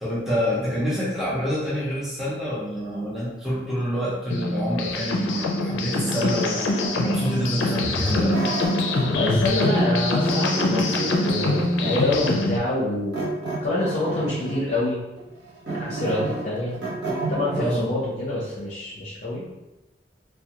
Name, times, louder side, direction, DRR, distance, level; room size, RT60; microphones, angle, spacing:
voice 1, 0.0-8.5 17.5-18.0, equal, ahead, -8 dB, 0.6 m, -27 dB
sound 1, 4.3-12.6, left 2 dB, 90° left, 0.4 m, -24 dB
sound 2, 6.5-9.3 9.6-12.3 13.1-14.7 15.2-17.7, right 2 dB, 70° right, 0.7 m, -31 dB
voice 2, 9.0-13.3 13.6-15.0 15.7-16.8 17.3-19.4, left 2 dB, 40° left, -7 dB, 0.6 m, -26 dB
2.3 x 2.2 x 2.8 m, 0.99 s
head